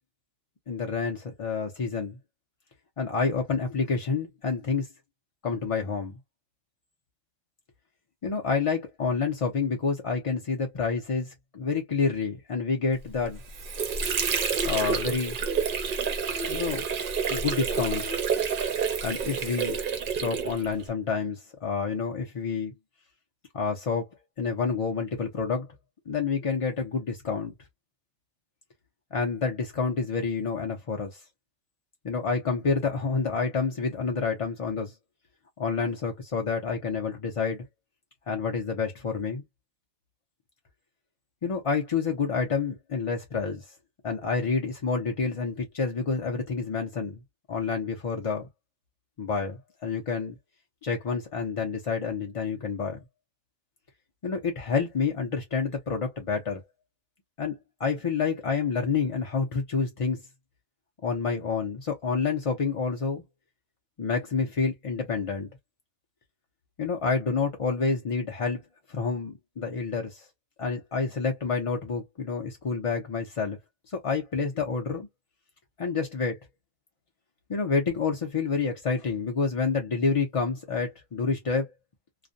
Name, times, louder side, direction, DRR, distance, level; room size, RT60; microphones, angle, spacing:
voice 1, 0.7-2.2 3.0-4.9 5.4-6.2 8.2-13.4 14.6-15.4 16.5-16.8 17.3-18.2 19.0-19.8 20.1-22.7 23.5-24.1 24.4-25.7 26.1-27.5 29.1-31.2 32.0-34.9 35.6-37.7 38.3-39.4 41.4-43.7 44.0-47.2 47.5-48.5 49.2-50.4 50.8-53.0 54.2-56.6 57.4-60.2 61.0-63.2 64.0-65.5 66.8-68.6 68.9-70.3 70.6-73.6 73.9-75.1 75.8-76.4 77.5-81.7, left 5 dB, 55° left, 0.3 m, -28 dB
Water / Sink (filling or washing), 13.2-20.9, right 6 dB, 55° right, 0.6 m, -29 dB
2.4 x 2.1 x 2.5 m
omnidirectional pair, 1.3 m